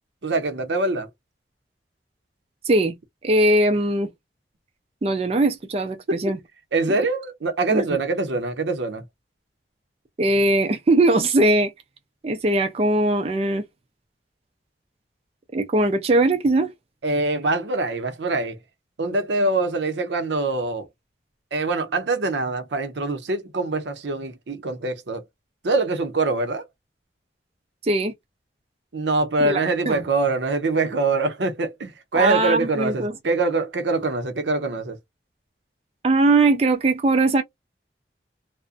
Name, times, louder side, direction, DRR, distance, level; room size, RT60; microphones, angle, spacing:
voice 1, 0.2-1.1 6.1-6.4 6.7-9.0 17.0-18.6 19.0-20.9 21.5-25.2 25.6-26.6 28.9-35.0, right 3 dB, 90° right, 0.6 m, -24 dB
voice 2, 3.2-4.1 5.0-6.4 6.9-7.0 7.7-7.8 10.2-11.7 12.2-13.6 15.5-16.7 27.8-28.1 29.4-30.0 32.1-33.1 36.0-37.4, right 2 dB, 35° right, 0.4 m, -20 dB
2.4 x 2.1 x 2.4 m
head